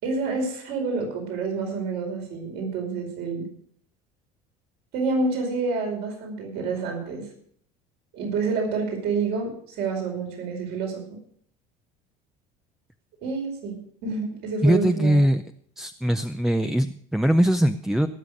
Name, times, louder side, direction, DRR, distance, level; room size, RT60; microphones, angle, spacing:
voice 1, 0.0-3.5 4.9-7.2 8.1-11.2 13.2-15.2, right 4 dB, 65° right, 2 dB, 5.0 m, -28 dB
voice 2, 14.6-15.4 15.8-18.1, equal, ahead, 7 dB, 0.5 m, -21 dB
18.0 x 7.0 x 6.4 m, 0.62 s
cardioid pair, 120°, 19 cm